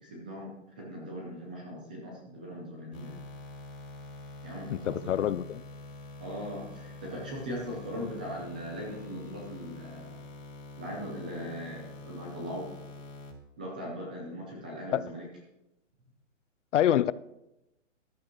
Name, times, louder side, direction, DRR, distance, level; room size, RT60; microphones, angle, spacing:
voice 1, 0.0-3.1 4.4-5.1 6.2-10.2 10.8-12.7 13.6-15.3, equal, 5° right, 0.4 m, -39 dB
sound 1, 2.9-13.3, left 3 dB, 90° left, 3.9 m, -46 dB
voice 2, 4.7-5.6 14.9-15.0 16.7-17.1, left 11 dB, 70° left, 0.5 m, -26 dB
13.5 x 11.5 x 3.0 m
hypercardioid pair, 165°, 38 cm